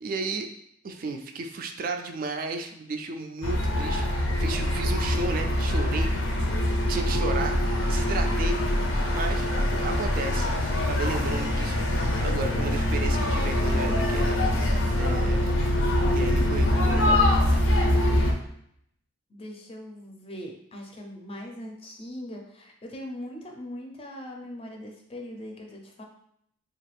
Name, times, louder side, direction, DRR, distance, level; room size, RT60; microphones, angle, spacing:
voice 1, 0.0-0.5 0.8-6.5 6.9-7.6 7.9-8.6 9.1-10.5 10.8-11.9 12.2-14.4 14.9-15.5 16.1-17.2, right 3 dB, 45° right, 5 dB, 0.3 m, -33 dB
sound 1, 3.4-18.3, left 1 dB, 85° left, 0.6 m, -24 dB
voice 2, 19.3-26.0, left 1 dB, 30° left, 1 dB, 0.5 m, -40 dB
3.2 x 2.4 x 3.2 m, 0.71 s
head